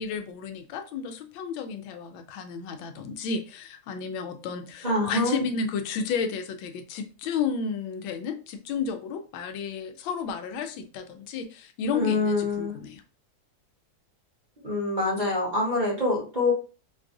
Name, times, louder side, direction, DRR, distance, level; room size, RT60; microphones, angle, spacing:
voice 1, 0.0-13.0, left 5 dB, 80° left, 1.4 m, -32 dB
voice 2, 4.8-5.4 11.9-12.7 14.6-16.5, left 2 dB, 25° right, 1.1 m, -25 dB
4.5 x 2.4 x 2.5 m
omnidirectional pair, 2.1 m